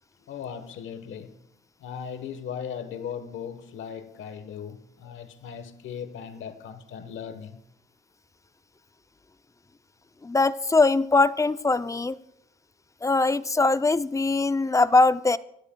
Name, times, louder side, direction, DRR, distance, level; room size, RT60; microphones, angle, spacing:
voice 1, 0.3-1.4 1.8-7.6, left 7 dB, 75° left, 1.2 m, -38 dB
voice 2, 10.2-12.2 13.0-15.4, left 3 dB, 15° left, 0.5 m, -21 dB
26.0 x 13.0 x 2.2 m
cardioid pair, 90°, 20 cm